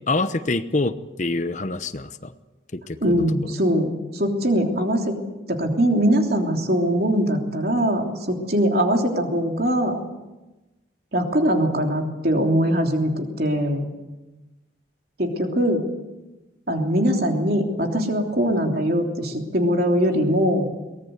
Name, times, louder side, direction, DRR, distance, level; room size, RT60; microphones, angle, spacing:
voice 1, 0.1-2.3 2.7-3.2, left 2 dB, 40° left, 11 dB, 0.9 m, -26 dB
voice 2, 3.0-5.2 5.5-10.0 11.1-13.9 15.2-15.8 16.7-20.7, equal, 50° right, 3 dB, 3.3 m, -22 dB
23.0 x 18.5 x 8.1 m, 1.1 s
head